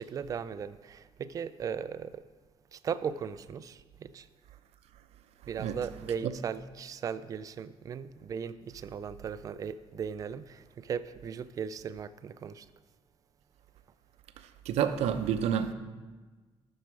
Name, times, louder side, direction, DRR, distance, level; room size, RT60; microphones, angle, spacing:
voice 1, 0.0-2.2 2.7-4.3 5.5-12.7, right 7 dB, 35° right, 0.3 m, -37 dB
voice 2, 14.4-15.7, right 9 dB, 85° right, 0.7 m, -29 dB
11.0 x 6.3 x 4.8 m
cardioid pair, 180°, 10 cm